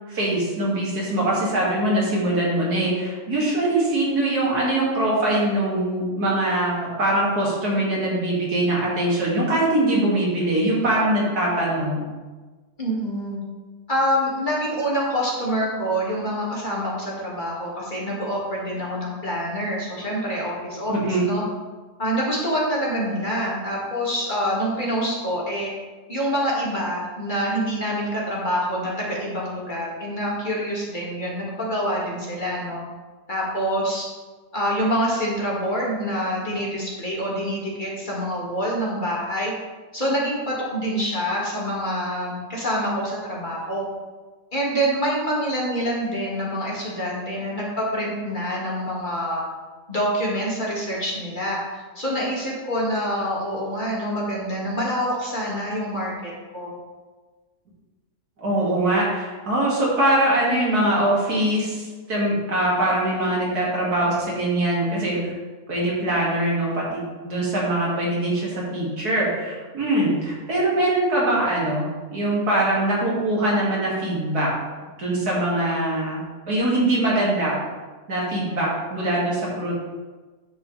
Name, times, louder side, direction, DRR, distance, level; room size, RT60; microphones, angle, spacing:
voice 1, 0.1-12.0 20.9-21.2 58.4-65.3 65.7-71.8 72.1-74.5 75.0-76.2 76.5-77.6 78.1-79.7, right 1 dB, 85° right, -5 dB, 3.0 m, -22 dB
voice 2, 12.8-13.4 13.9-21.4 22.0-25.7 26.1-32.8 33.3-34.1 34.5-39.5 39.9-43.8 44.5-49.4 49.9-56.7, equal, 30° left, -5 dB, 2.3 m, -26 dB
9.4 x 8.0 x 3.3 m, 1.3 s
omnidirectional pair, 1.6 m